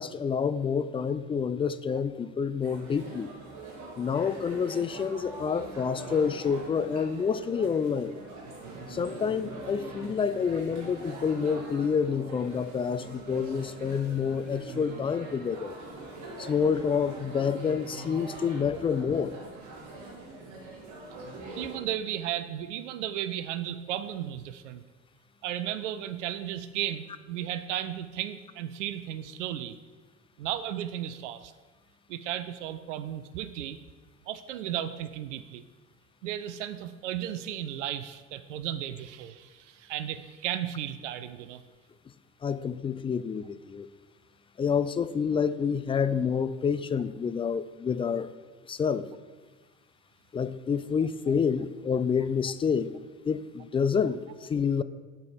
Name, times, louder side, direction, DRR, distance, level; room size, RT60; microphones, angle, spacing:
voice 1, 0.0-3.3 4.0-8.1 8.9-15.8 16.4-19.3 42.4-43.9 44.6-48.3 48.7-49.1 50.3-52.9 53.2-54.8, left 6 dB, 15° left, 14 dB, 0.3 m, -28 dB
sound 1, 2.6-21.8, right 2 dB, 50° right, 2.2 m, -43 dB
voice 2, 21.6-24.8 25.4-29.8 30.4-31.5 32.1-33.8 34.3-35.6 36.2-41.6, right 11 dB, 75° right, 12 dB, 0.6 m, -34 dB
7.8 x 5.6 x 6.6 m, 1.3 s
figure-of-eight pair, 55°, 37 cm